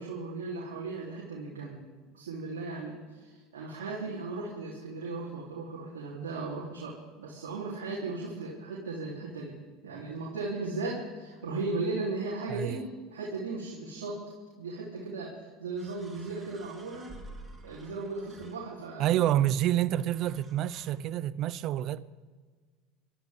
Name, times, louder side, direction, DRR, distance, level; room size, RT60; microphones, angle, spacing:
voice 1, 0.0-1.8 2.1-9.6 9.8-14.2 14.6-17.1 17.6-19.2, right 3 dB, 85° right, 3.6 m, -36 dB
voice 2, 12.5-12.9 19.0-22.0, right 12 dB, 55° right, 0.7 m, -28 dB
sound 1, 15.8-19.0 20.0-20.9, right 2 dB, 25° right, 3.6 m, -51 dB
26.0 x 13.0 x 3.7 m
hypercardioid pair, 85°, 0 cm